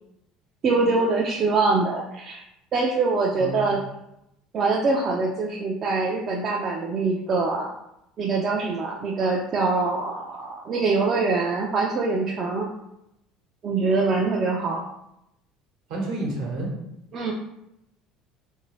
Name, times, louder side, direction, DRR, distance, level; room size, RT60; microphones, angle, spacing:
voice 1, 0.6-2.4 2.7-3.8 4.5-7.7 8.2-12.7 13.6-14.8 17.1-17.3, right 3 dB, 45° right, -2 dB, 0.5 m, -24 dB
voice 2, 3.3-3.7 15.9-16.7, right 2 dB, 70° right, -2 dB, 1.1 m, -30 dB
2.7 x 2.6 x 3.0 m, 0.82 s
hypercardioid pair, 75°, 0 cm